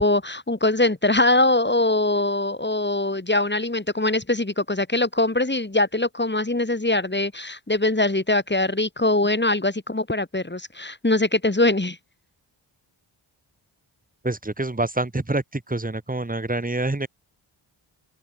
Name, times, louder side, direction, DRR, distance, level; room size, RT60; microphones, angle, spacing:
voice 1, 0.0-12.0, left 2 dB, 20° left, 5.5 m, -22 dB
voice 2, 14.2-15.4 15.7-17.1, right 2 dB, 15° right, 2.5 m, -26 dB
cardioid pair, 65°, 49 cm